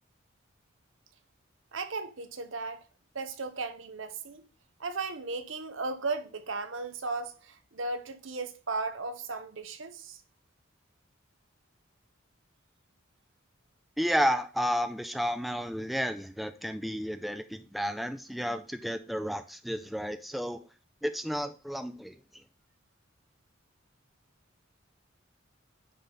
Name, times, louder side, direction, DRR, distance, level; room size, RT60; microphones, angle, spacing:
voice 1, 1.7-2.8 3.1-4.4 4.8-10.2, right 3 dB, 85° right, 1.0 m, -36 dB
voice 2, 14.0-20.6 21.0-22.1, equal, ahead, 0.4 m, -32 dB
9.7 x 3.5 x 5.3 m
head